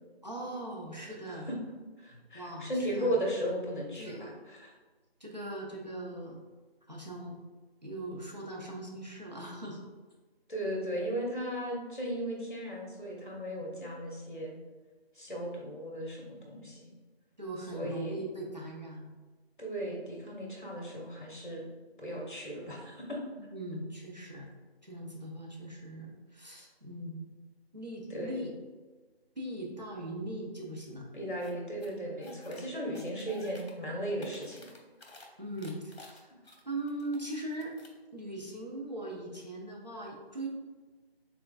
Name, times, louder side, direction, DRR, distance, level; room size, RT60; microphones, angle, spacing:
voice 1, 0.2-1.5 2.3-3.2 4.0-4.3 5.2-6.4 6.9-7.3 7.8-9.8 17.4-19.1 23.5-24.5 24.8-27.3 27.7-28.5 29.4-31.1 35.4-36.3 36.6-37.7 38.1-40.5, right 1 dB, 45° right, -2 dB, 0.6 m, -40 dB
voice 2, 2.0-4.7 10.5-14.5 15.1-16.9 17.7-18.2 19.6-21.6 22.0-23.2 28.1-28.4 31.1-34.6, right 1 dB, 50° left, -2 dB, 1.1 m, -36 dB
sound 1, 31.4-31.5 31.8-32.6 32.9-33.7 34.0-35.3 35.6-37.2 37.5-38.0, left 2 dB, 70° left, 0.9 m, -53 dB
4.6 x 3.7 x 2.3 m, 1.3 s
figure-of-eight pair, 170°, 32 cm